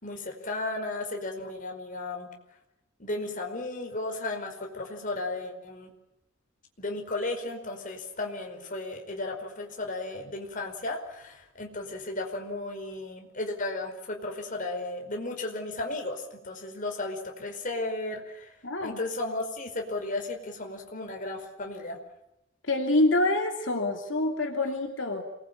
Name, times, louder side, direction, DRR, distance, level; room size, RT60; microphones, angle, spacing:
voice 1, 0.0-2.3 3.0-5.9 6.8-18.5 18.8-22.0, left 2 dB, 45° left, 3 dB, 5.1 m, -34 dB
voice 2, 18.6-19.0 22.7-25.2, left 2 dB, 70° left, 3 dB, 3.0 m, -26 dB
27.5 x 21.0 x 8.9 m, 0.86 s
head